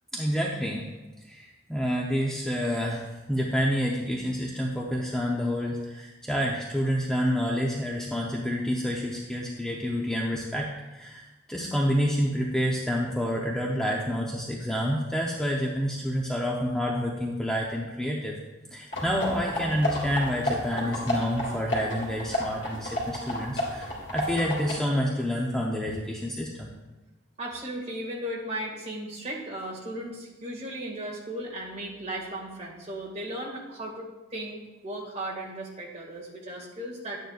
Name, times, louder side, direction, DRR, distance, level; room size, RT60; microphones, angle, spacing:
voice 1, 0.1-0.9 1.2-18.4 18.7-26.7, equal, 5° left, -3 dB, 0.7 m, -28 dB
sound 1, 18.9-24.7, left 1 dB, 60° left, 3.3 m, -31 dB
voice 2, 27.4-37.2, right 1 dB, 30° right, -2 dB, 1.9 m, -36 dB
12.0 x 9.2 x 2.4 m, 1.1 s
head